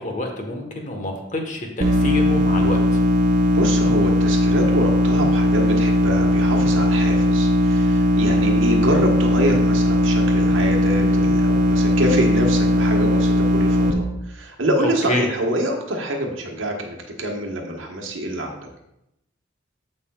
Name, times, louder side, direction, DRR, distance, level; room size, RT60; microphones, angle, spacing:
voice 1, 0.0-3.0 14.8-15.3, left 1 dB, 40° left, 2 dB, 1.2 m, -27 dB
sound 1, 1.8-13.9, left 1 dB, 35° right, 0.8 m, -18 dB
voice 2, 3.4-18.7, right 1 dB, 70° right, 2 dB, 1.4 m, -26 dB
14.5 x 5.4 x 2.4 m, 0.85 s
head